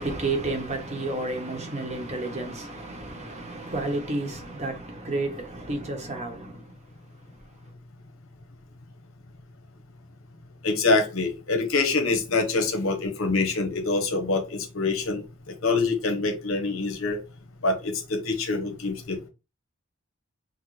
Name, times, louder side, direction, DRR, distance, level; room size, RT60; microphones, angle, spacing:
voice 1, 0.0-6.5, right 2 dB, 35° right, 1.0 m, -31 dB
voice 2, 10.6-15.2 15.6-17.2 17.6-19.3, left 3 dB, 75° left, 1.0 m, -25 dB
6.0 x 2.1 x 3.2 m
head